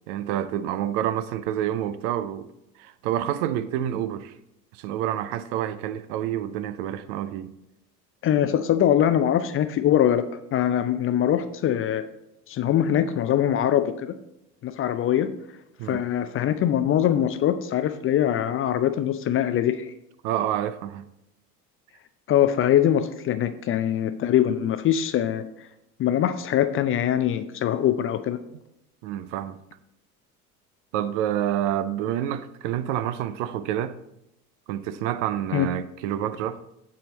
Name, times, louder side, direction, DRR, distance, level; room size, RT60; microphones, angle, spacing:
voice 1, 0.1-2.5 2.8-4.3 4.7-7.5 15.8-16.0 20.2-21.0 29.0-29.6 30.9-34.0 34.7-36.6, right 11 dB, 55° right, 0.6 m, -28 dB
voice 2, 8.2-10.2 10.5-12.0 12.5-14.1 14.6-15.3 15.9-19.9 22.3-25.4 26.0-28.4 35.5-35.7, left 10 dB, 30° left, 0.5 m, -22 dB
7.7 x 7.4 x 4.0 m
figure-of-eight pair, 65°, 45 cm